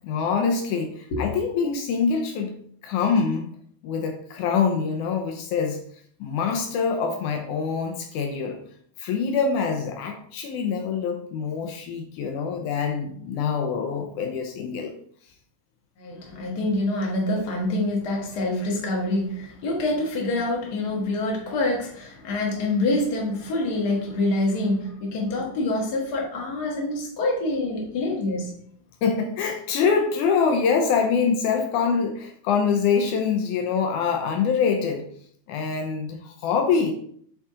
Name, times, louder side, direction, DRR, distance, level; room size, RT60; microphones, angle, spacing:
voice 1, 0.0-3.5 3.8-5.8 6.2-8.6 9.0-14.9 29.0-35.1 35.5-36.9, left 6 dB, 80° left, 4 dB, 2.0 m, -25 dB
voice 2, 16.0-28.5, left 2 dB, 40° left, -1 dB, 1.5 m, -26 dB
8.2 x 3.7 x 3.7 m, 0.63 s
omnidirectional pair, 3.7 m